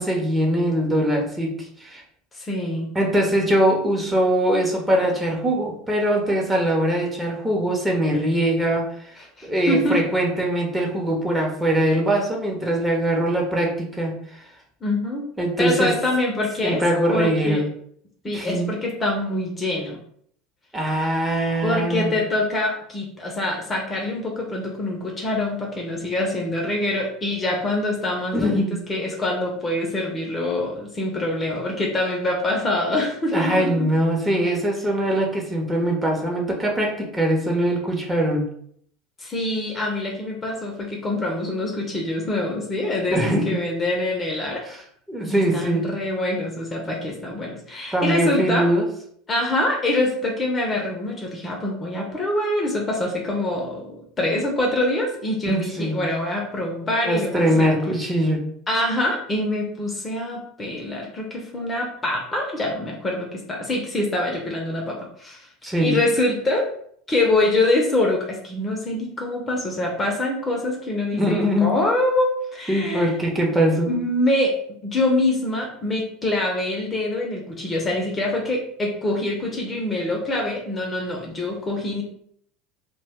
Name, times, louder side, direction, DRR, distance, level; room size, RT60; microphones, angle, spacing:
voice 1, 0.0-1.5 1.8-2.0 2.9-8.9 9.4-14.1 15.4-15.9 16.6-17.6 18.3-18.7 20.7-22.1 28.3-28.8 33.3-38.4 43.1-43.6 44.6-44.8 45.1-45.8 47.9-48.8 55.4-56.0 57.0-58.4 65.6-66.0 71.1-71.8 72.7-73.9, right 1 dB, 10° right, -1 dB, 0.8 m, -22 dB
voice 2, 2.3-2.9 9.4-10.0 14.8-15.3 15.6-16.8 17.1-17.6 18.2-20.0 21.6-28.6 28.9-33.7 39.2-44.6 45.2-48.7 49.3-57.3 57.6-57.7 58.7-65.5 65.8-66.7 67.1-73.1 73.9-82.0, left 1 dB, 25° left, 0 dB, 0.6 m, -25 dB
2.2 x 2.2 x 3.5 m, 0.65 s
hypercardioid pair, 85°, 0 cm